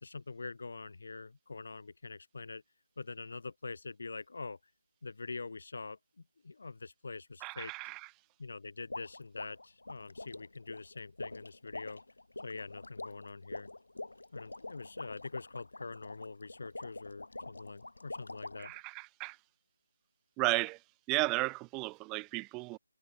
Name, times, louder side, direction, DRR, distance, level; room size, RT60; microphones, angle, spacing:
voice 1, 0.0-2.6 3.0-4.6 5.0-7.7 8.4-12.0 12.4-13.7 14.3-18.7, left 3 dB, 60° left, 2.6 m, -44 dB
voice 2, 7.4-8.0 18.6-19.4 20.4-20.8 21.1-22.8, right 26 dB, 10° right, 0.3 m, -34 dB
sound 1, 8.9-18.8, left 2 dB, 90° left, 3.3 m, -45 dB
figure-of-eight pair, 170°, 0 cm